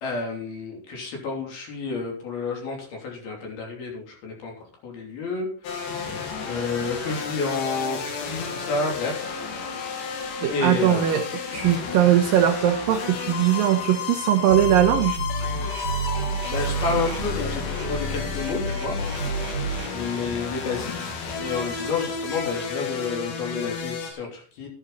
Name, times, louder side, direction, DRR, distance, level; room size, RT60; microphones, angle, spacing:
voice 1, 0.0-4.5 4.8-9.3 10.5-11.1 16.5-19.0 19.9-21.1 21.4-24.7, left 4 dB, 55° left, 0 dB, 4.7 m, -30 dB
sound 1, 5.6-24.1, left 5 dB, 75° left, 4.4 m, -32 dB
voice 2, 10.4-11.2 11.5-15.2, right 11 dB, 85° right, 5 dB, 2.0 m, -20 dB
sound 2, 14.5-19.9, right 2 dB, 50° right, 2.4 m, -30 dB
12.5 x 11.0 x 4.1 m, 0.43 s
omnidirectional pair, 5.3 m